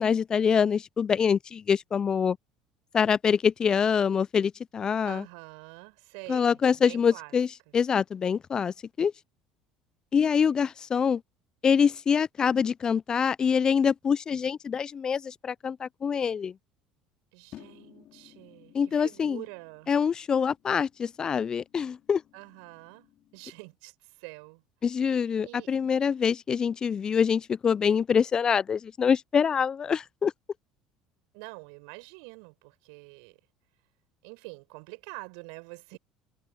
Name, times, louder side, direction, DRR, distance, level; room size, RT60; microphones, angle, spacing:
voice 1, 0.0-2.4 2.9-5.2 6.3-9.1 10.1-11.2 11.6-16.5 18.7-19.4 19.9-22.2 24.8-30.3, left 7 dB, 35° left, 0.4 m, -25 dB
voice 2, 5.0-7.3 17.3-19.9 22.3-24.6 25.4-25.7 31.3-33.4 34.2-36.0, right 38 dB, 70° right, 7.4 m, -46 dB
sound 1, 17.5-23.7, left 13 dB, 55° left, 4.3 m, -56 dB
hypercardioid pair, 70°, 2 cm